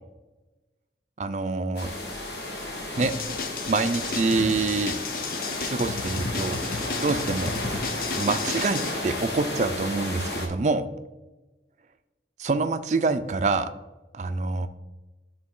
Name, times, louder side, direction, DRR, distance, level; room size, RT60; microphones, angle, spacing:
voice 1, 1.2-1.9 3.0-3.1 3.7-5.0 5.6-6.6 7.0-7.5 8.1-10.9 12.4-13.7 14.1-14.7, right 3 dB, 40° right, 10 dB, 0.4 m, -26 dB
sound 1, 1.8-10.5, left 2 dB, 70° left, 1.5 m, -33 dB
sound 2, 3.0-8.9, left 4 dB, 50° left, 0.5 m, -33 dB
11.0 x 3.9 x 3.7 m, 1.1 s
head